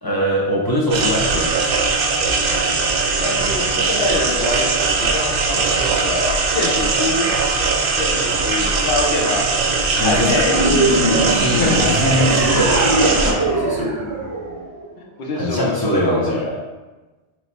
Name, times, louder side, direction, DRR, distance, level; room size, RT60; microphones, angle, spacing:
voice 1, 0.0-1.6 10.0-10.4 11.0-11.7 12.0-13.9 15.3-16.4, equal, 25° left, -5 dB, 0.5 m, -21 dB
sound 1, 0.9-13.3, right 4 dB, 60° right, 0.7 m, -20 dB
voice 2, 3.2-4.7 5.0-7.3 8.0-9.5 10.0-10.6 11.5-11.9 15.2-16.6, left 3 dB, 60° left, 0 dB, 0.9 m, -24 dB
sound 2, 10.5-15.0, right 1 dB, 25° right, 0.5 m, -21 dB
3.1 x 3.0 x 4.0 m, 1.2 s
omnidirectional pair, 1.2 m